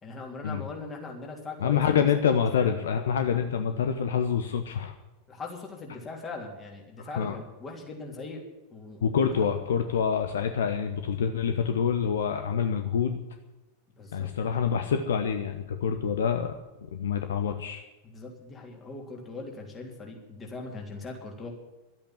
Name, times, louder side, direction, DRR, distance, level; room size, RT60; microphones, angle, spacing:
voice 1, 0.0-2.3 2.6-2.7 5.3-8.4 8.7-9.0 9.3-9.6 14.0-14.3 18.0-21.5, left 3 dB, 20° left, 1 dB, 3.4 m, -40 dB
voice 2, 1.6-4.9 7.1-7.4 9.0-13.3 14.1-16.5 16.9-17.8, left 7 dB, 60° left, 7 dB, 1.0 m, -26 dB
12.5 x 8.7 x 9.3 m, 1.1 s
figure-of-eight pair, 90°, 0 cm